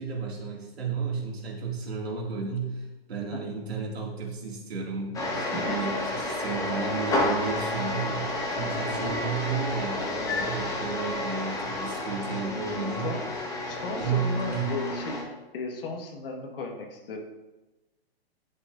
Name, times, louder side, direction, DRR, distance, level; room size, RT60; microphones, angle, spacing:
voice 1, 0.0-13.2 14.0-14.8, right 5 dB, 80° right, -2 dB, 2.1 m, -33 dB
sound 1, 5.1-15.2, left 1 dB, 10° left, 1.1 m, -30 dB
voice 2, 13.7-15.2 15.5-17.2, left 4 dB, 65° left, 2 dB, 1.5 m, -35 dB
10.5 x 4.5 x 2.5 m, 1.1 s
hypercardioid pair, 145°, 31 cm